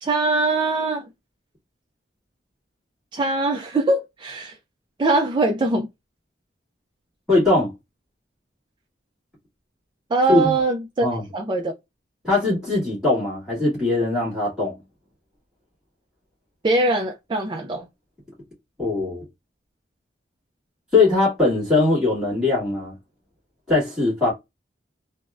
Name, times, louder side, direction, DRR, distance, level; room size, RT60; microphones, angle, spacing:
voice 1, 0.0-1.1 3.1-4.6 5.0-5.9 10.1-11.1 11.3-11.7 16.6-17.9, right 2 dB, 25° right, 0.4 m, -22 dB
voice 2, 7.3-7.7 10.3-10.5 11.0-11.2 12.2-14.8 18.8-19.2 20.9-22.9 23.7-24.3, left 3 dB, 5° right, 1.9 m, -20 dB
3.4 x 2.0 x 2.4 m
head